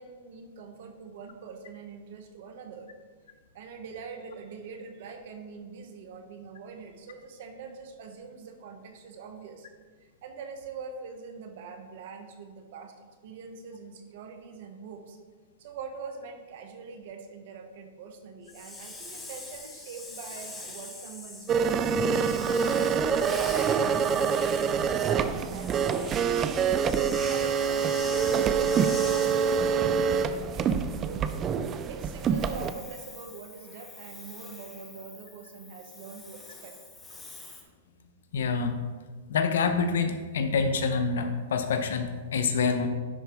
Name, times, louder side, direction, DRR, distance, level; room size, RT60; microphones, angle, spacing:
voice 1, 0.0-2.9 3.5-9.7 10.0-15.2 15.6-21.9 22.4-26.1 26.6-31.4 31.8-36.7, right 5 dB, 65° right, 5 dB, 1.2 m, -43 dB
Hiss, 18.5-29.9 32.2-37.6, left 2 dB, 15° left, 1.1 m, -44 dB
sound 1, 21.5-32.7, right 6 dB, 25° right, 0.4 m, -26 dB
voice 2, 38.3-38.8 39.3-42.9, left 5 dB, 80° left, 7 dB, 0.8 m, -26 dB
10.5 x 4.3 x 3.6 m, 1.4 s
hypercardioid pair, 130°, 0 cm